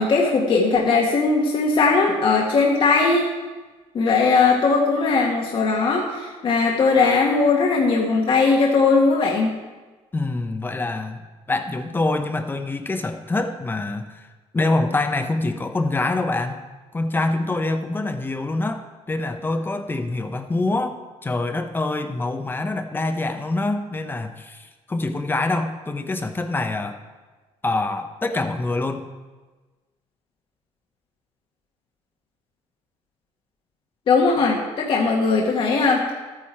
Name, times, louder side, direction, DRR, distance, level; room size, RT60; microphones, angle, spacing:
voice 1, 0.0-3.3 3.9-9.5 34.1-36.0, left 4 dB, 50° left, -1 dB, 1.6 m, -19 dB
voice 2, 10.1-11.2 11.5-14.3 14.5-16.6 16.9-27.0 27.6-29.1, left 2 dB, 15° left, 7 dB, 0.9 m, -25 dB
13.0 x 9.6 x 4.4 m, 1.2 s
cardioid pair, 120°, 12 cm